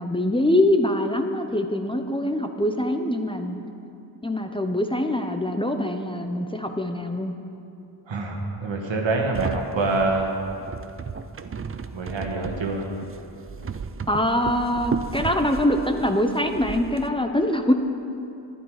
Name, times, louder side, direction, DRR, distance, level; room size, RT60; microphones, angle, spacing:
voice 1, 0.0-3.6 4.2-7.3 14.1-17.7, left 1 dB, 10° left, 5 dB, 0.7 m, -24 dB
voice 2, 8.1-10.3 11.9-12.9, right 3 dB, 80° right, 1 dB, 1.7 m, -26 dB
sound 1, 9.3-17.1, right 5 dB, 30° right, 0.4 m, -34 dB
11.0 x 11.0 x 4.9 m, 2.6 s
cardioid pair, 60°, 45 cm